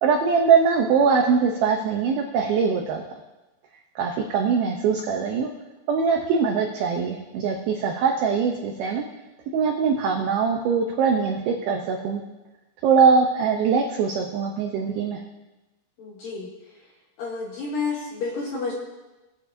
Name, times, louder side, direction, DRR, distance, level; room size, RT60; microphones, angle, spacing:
voice 1, 0.0-3.0 4.0-5.5 5.9-9.0 9.5-12.2 12.8-15.2, right 5 dB, 85° right, 2 dB, 2.1 m, -22 dB
voice 2, 16.0-16.5 17.2-18.7, left 4 dB, 70° left, -2 dB, 2.3 m, -30 dB
20.5 x 8.0 x 2.6 m, 1.1 s
omnidirectional pair, 5.3 m